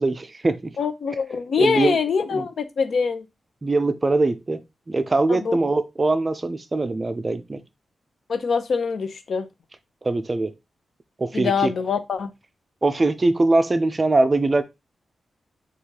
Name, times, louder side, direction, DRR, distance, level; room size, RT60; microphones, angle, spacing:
voice 1, 0.0-0.7 1.6-2.0 2.3-2.4 3.6-4.6 4.9-7.6 10.0-10.5 11.2-11.7 12.8-14.6, right 2 dB, 25° right, 0.4 m, -22 dB
voice 2, 0.8-3.2 5.3-5.6 8.3-9.5 11.3-12.3, left 5 dB, 65° left, 0.6 m, -24 dB
6.3 x 2.4 x 2.8 m
wide cardioid pair, 130°, 0 cm